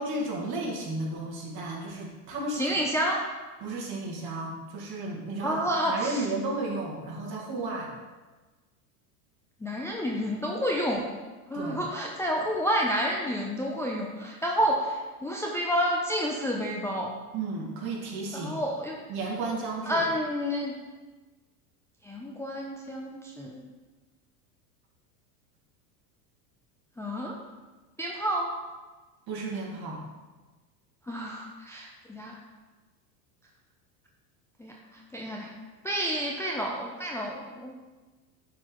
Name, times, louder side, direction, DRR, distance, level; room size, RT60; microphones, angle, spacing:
voice 1, 0.0-2.8 3.6-7.9 11.5-11.8 17.3-18.5 19.1-20.0 29.3-30.0, right 2 dB, 50° right, -2 dB, 1.9 m, -33 dB
voice 2, 2.5-3.2 5.4-6.2 9.6-11.1 11.5-17.1 18.3-19.0 19.9-20.7 22.0-23.7 27.0-27.4 28.0-28.5 31.1-32.4 34.6-35.5 35.8-37.8, equal, 5° left, -2 dB, 0.5 m, -30 dB
9.4 x 4.1 x 3.1 m, 1.3 s
hypercardioid pair, 100°, 48 cm